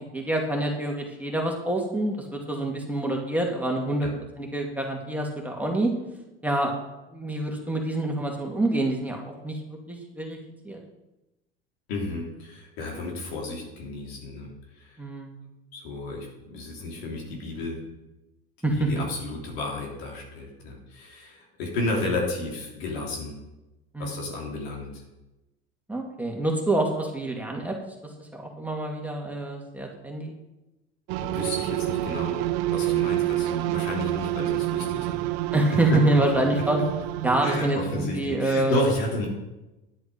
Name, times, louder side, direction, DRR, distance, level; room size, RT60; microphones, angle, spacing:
voice 1, 0.1-4.1 4.4-5.9 6.4-6.7 7.1-10.4 10.6-10.8 15.0-15.4 18.6-18.9 23.9-24.3 25.9-27.7 28.2-30.3 35.5-36.8 37.2-38.9, right 1 dB, 5° right, 0 dB, 2.3 m, -26 dB
voice 2, 11.9-14.5 14.8-15.0 15.7-17.8 18.7-23.3 24.0-25.0 31.2-35.2 35.9-36.0 36.3-36.4 37.4-39.3, left 2 dB, 75° left, -1 dB, 3.2 m, -32 dB
sound 1, 31.1-37.6, right 16 dB, 65° right, 0.6 m, -28 dB
10.5 x 7.7 x 5.3 m, 1.0 s
hypercardioid pair, 75°, 32 cm